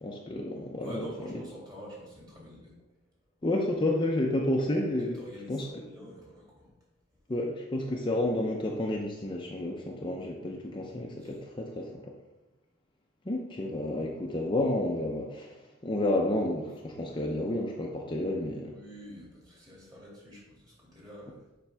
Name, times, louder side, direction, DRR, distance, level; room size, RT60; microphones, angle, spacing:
voice 1, 0.0-1.4 3.4-5.2 5.5-5.8 7.3-12.0 13.3-15.5 15.8-18.7, left 1 dB, 25° left, 0 dB, 0.6 m, -30 dB
voice 2, 0.8-2.8 5.0-6.7 11.2-11.4 18.6-21.4, equal, 20° right, -4 dB, 2.5 m, -47 dB
7.3 x 5.2 x 3.4 m, 1.0 s
head